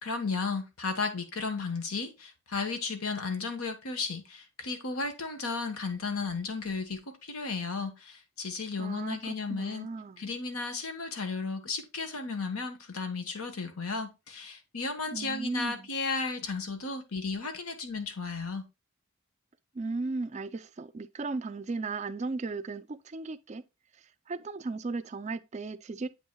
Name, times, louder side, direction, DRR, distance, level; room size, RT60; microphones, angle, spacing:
voice 1, 0.0-9.9 10.2-18.6, left 4 dB, 85° left, 1.2 m, -34 dB
voice 2, 8.8-10.3 15.1-15.9 19.7-23.6 24.3-26.1, right 3 dB, 30° right, 0.3 m, -36 dB
7.9 x 5.5 x 2.3 m
head